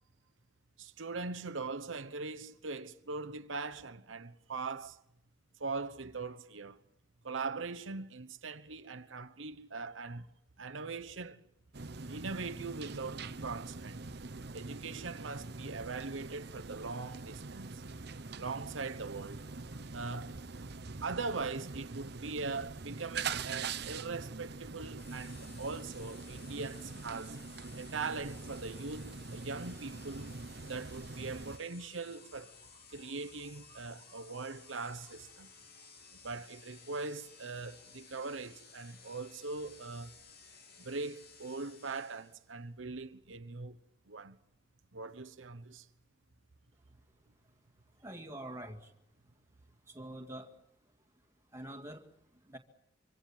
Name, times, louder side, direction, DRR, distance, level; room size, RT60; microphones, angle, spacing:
voice 1, 0.8-5.0 5.6-6.8 7.2-10.3 10.6-11.4 12.1-14.0 14.5-17.8 18.4-19.4 19.9-20.4 21.0-27.4 27.8-30.3 30.6-32.6 32.9-35.5 36.2-40.1 40.8-43.8 44.1-44.4 44.9-45.9, right 4 dB, 80° right, 1.1 m, -41 dB
sound 1, 11.7-31.6, right 4 dB, 55° right, 1.0 m, -43 dB
sound 2, 25.0-42.5, left 6 dB, 55° left, 3.1 m, -57 dB
voice 2, 48.0-48.9 49.9-50.6 51.5-52.6, right 1 dB, 15° right, 2.2 m, -46 dB
25.5 x 25.0 x 7.4 m
head